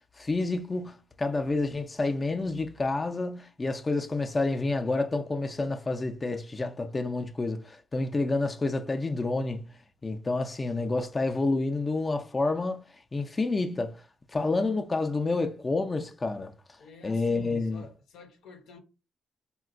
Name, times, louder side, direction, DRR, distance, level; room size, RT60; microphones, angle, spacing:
voice 1, 0.2-9.7 10.0-12.8 13.1-14.0 14.3-16.5 17.0-17.8, left 3 dB, 25° left, 0.4 m, -29 dB
voice 2, 16.8-18.8, left 4 dB, 85° left, 0.6 m, -48 dB
3.7 x 2.2 x 2.4 m
cardioid pair, 90°, 0 cm